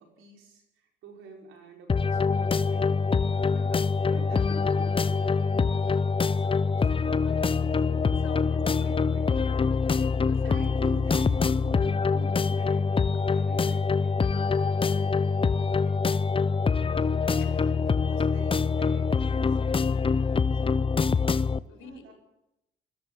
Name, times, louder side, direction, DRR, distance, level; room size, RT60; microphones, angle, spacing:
voice 1, 0.0-3.0 3.5-4.5 5.0-9.5 10.4-19.8 20.5-22.1, right 5 dB, 90° right, 3 dB, 5.5 m, -48 dB
sound 1, 1.9-21.6, left 5 dB, 25° left, 0.7 m, -25 dB
voice 2, 3.4-3.8 4.5-4.6 4.9-5.0 7.9-10.9 17.4-17.7 20.2-20.5 21.7-22.1, left 5 dB, 85° left, 3 dB, 4.8 m, -46 dB
22.5 x 14.0 x 8.8 m, 0.86 s
cardioid pair, 90°, 20 cm